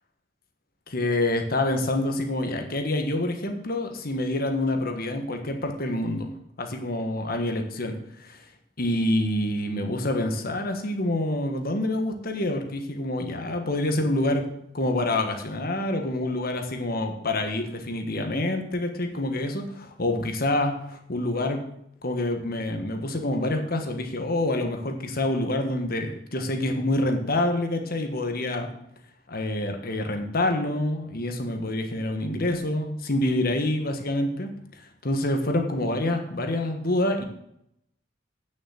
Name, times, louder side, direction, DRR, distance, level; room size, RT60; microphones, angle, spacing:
voice 1, 0.9-6.3 6.6-8.4 8.8-14.4 14.7-21.6 22.0-28.7 29.3-34.5 35.0-37.2, left 1 dB, 55° left, 5 dB, 1.4 m, -27 dB
9.2 x 6.2 x 7.5 m, 0.75 s
head